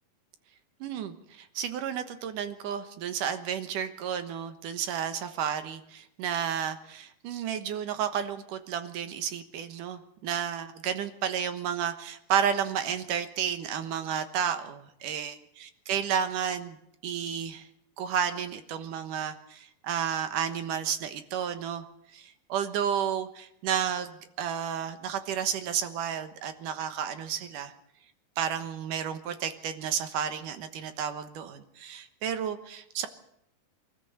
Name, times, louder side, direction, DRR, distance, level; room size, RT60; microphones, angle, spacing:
voice 1, 0.8-16.8 17.0-17.7 18.0-21.8 22.1-27.7 28.4-33.1, right 8 dB, 65° right, 9 dB, 2.6 m, -32 dB
23.5 x 14.0 x 7.8 m, 0.76 s
omnidirectional pair, 4.3 m